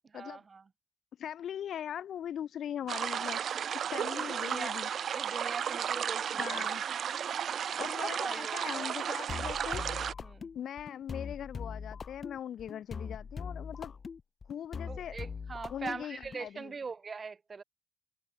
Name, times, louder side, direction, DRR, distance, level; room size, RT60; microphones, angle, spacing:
voice 1, 0.0-0.6 4.2-4.9 5.1-6.7 7.7-8.9 10.2-10.5 14.9-17.6, right 5 dB, 40° right, 1.0 m, -42 dB
voice 2, 1.2-3.4 3.9-4.9 6.4-6.8 7.6-9.9 10.5-13.9 14.5-15.2 15.7-16.7, left 10 dB, 70° left, 0.4 m, -40 dB
sound 1, 2.9-10.1, right 8 dB, 60° right, 0.4 m, -34 dB
sound 2, 9.3-16.5, left 5 dB, 45° left, 1.0 m, -42 dB
cardioid pair, 75°, 0 cm